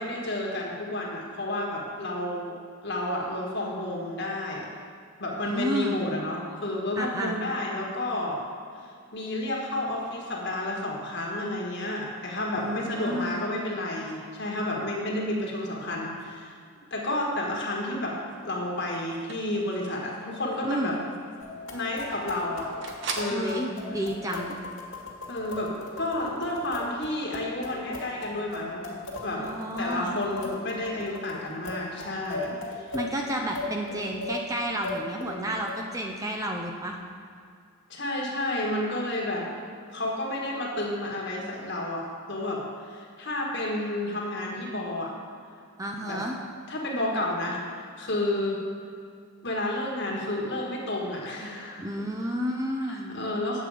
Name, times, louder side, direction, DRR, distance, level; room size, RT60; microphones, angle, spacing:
voice 1, 0.0-2.6 2.8-4.7 5.2-8.4 9.1-16.5 16.9-18.1 18.4-21.0 21.7-22.7 23.2-23.7 25.3-28.9 29.2-29.4 29.8-32.9 37.9-39.5 39.9-45.1 46.0-46.2 46.7-47.6 48.0-48.6 49.4-51.9 52.9-53.6, left 1 dB, 50° left, -2 dB, 1.5 m, -31 dB
voice 2, 5.5-6.0 7.0-7.4 12.6-13.4 20.6-21.0 23.3-24.6 29.4-30.2 32.9-37.0 45.8-46.4 51.8-53.2, equal, 15° right, 1 dB, 0.5 m, -31 dB
sound 1, 18.3-23.4, right 4 dB, 55° right, 0.9 m, -42 dB
sound 2, 21.4-35.8, left 2 dB, 70° left, 1.9 m, -38 dB
8.8 x 7.8 x 4.9 m, 2.3 s
head